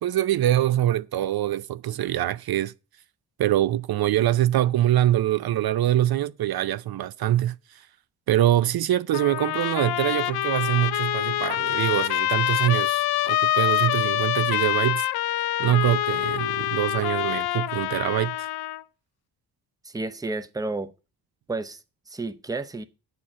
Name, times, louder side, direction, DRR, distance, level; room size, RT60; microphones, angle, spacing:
voice 1, 0.0-2.7 3.4-7.9 8.3-15.1 15.6-18.5, right 13 dB, 65° right, 0.6 m, -24 dB
Trumpet, 9.1-18.8, left 13 dB, 70° left, 0.5 m, -26 dB
voice 2, 19.8-20.9 21.5-21.8 22.1-22.8, right 2 dB, 10° right, 0.7 m, -31 dB
8.6 x 4.6 x 7.5 m
cardioid pair, 100°, 40 cm